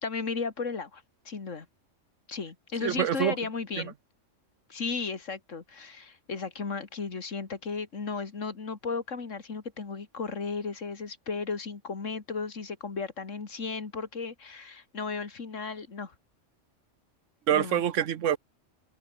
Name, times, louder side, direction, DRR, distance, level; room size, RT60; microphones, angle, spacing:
voice 1, 0.0-1.7 2.3-3.9 4.7-16.1 17.5-17.8, left 4 dB, 80° left, 2.6 m, -35 dB
voice 2, 2.8-3.4 3.8-3.9 17.5-18.4, right 9 dB, 75° right, 1.2 m, -26 dB
open air
omnidirectional pair, 1.3 m